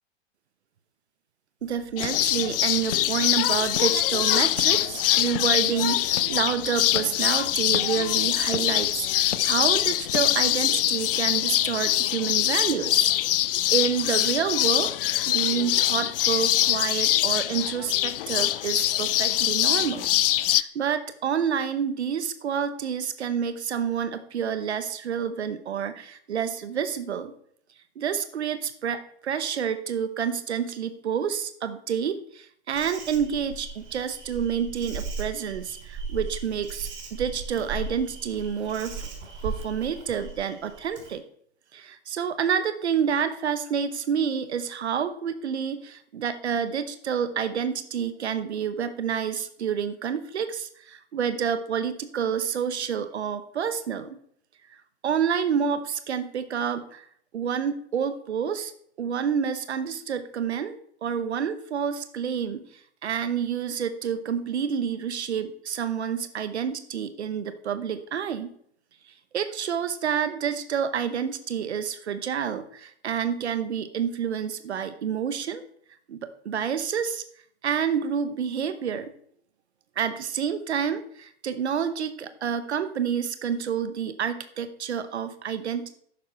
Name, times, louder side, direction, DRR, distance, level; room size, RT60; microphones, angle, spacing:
sound 1, 1.6-10.6, left 6 dB, 85° left, 0.8 m, -40 dB
voice 1, 1.6-13.1 13.7-14.9 15.3-20.1 20.4-27.3 28.0-39.0 39.4-41.2 41.7-54.2 54.7-57.1 57.3-58.7 59.0-68.5 69.3-75.6 76.1-77.2 77.6-79.1 80.0-86.0, right 7 dB, 70° right, 11 dB, 1.0 m, -28 dB
sound 2, 2.0-20.6, left 14 dB, 55° left, 0.6 m, -24 dB
Insect, 32.7-41.1, right 4 dB, 35° right, 4.9 m, -37 dB
11.5 x 9.4 x 4.4 m, 0.66 s
figure-of-eight pair, 105°, 34 cm